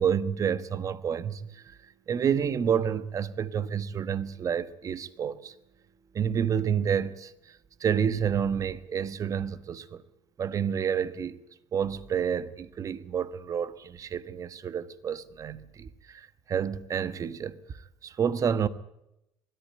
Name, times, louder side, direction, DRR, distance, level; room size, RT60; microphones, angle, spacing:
voice 1, 0.0-1.8 2.1-5.5 6.1-10.0 10.4-11.4 11.7-17.8 18.0-18.7, right 8 dB, 40° right, 1.2 m, -29 dB
21.0 x 14.0 x 9.0 m
supercardioid pair, 100°, 9 cm